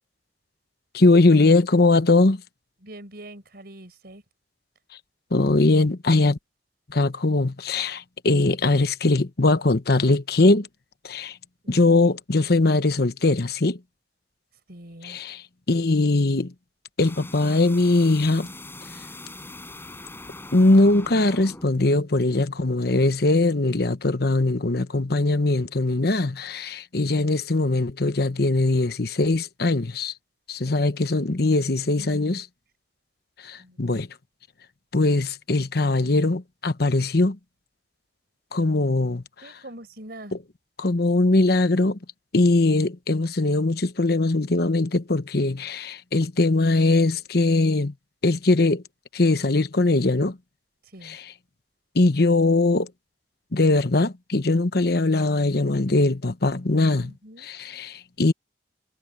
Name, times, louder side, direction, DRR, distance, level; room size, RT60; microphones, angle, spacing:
voice 1, 0.9-2.4 5.3-6.4 6.9-10.7 11.0-11.4 11.7-13.8 15.0-15.4 15.7-16.5 17.0-18.5 20.5-30.1 30.5-32.4 33.4-34.1 34.9-37.4 38.5-39.2 40.8-42.0 42.3-47.9 48.2-48.8 49.1-50.4 51.0-51.2 51.9-52.9 53.5-57.1 57.4-58.3, left 2 dB, 65° left, 1.1 m, -21 dB
voice 2, 2.8-4.2 11.6-12.1 14.7-15.2 30.7-30.8 32.0-32.4 33.6-33.9 39.4-40.3 50.8-51.2 57.0-57.5, right 1 dB, 60° right, 5.6 m, -43 dB
sound 1, 17.0-21.8, left 2 dB, 15° left, 7.5 m, -41 dB
head